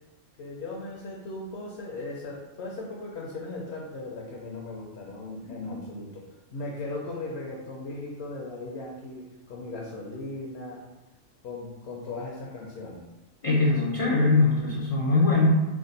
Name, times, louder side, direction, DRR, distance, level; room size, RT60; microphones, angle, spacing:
voice 1, 0.4-6.2 6.5-10.8 11.4-13.0, left 2 dB, 65° left, -2 dB, 0.9 m, -37 dB
voice 2, 5.4-5.8 13.4-15.5, left 3 dB, 45° left, -5 dB, 0.4 m, -22 dB
3.5 x 2.3 x 3.9 m, 1.1 s
omnidirectional pair, 1.3 m